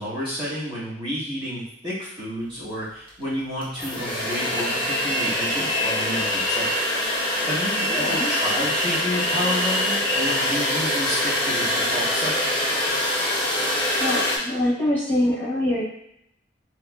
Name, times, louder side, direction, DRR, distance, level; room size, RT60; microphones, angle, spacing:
voice 1, 0.0-6.7 7.5-12.7, equal, 30° right, -10 dB, 1.4 m, -30 dB
sound 1, 3.1-3.2 3.6-14.4, left 1 dB, 25° left, 0.8 m, -24 dB
voice 2, 7.8-8.3 14.0-15.8, left 1 dB, 10° left, -10 dB, 1.1 m, -24 dB
3.5 x 3.1 x 2.3 m, 0.75 s
head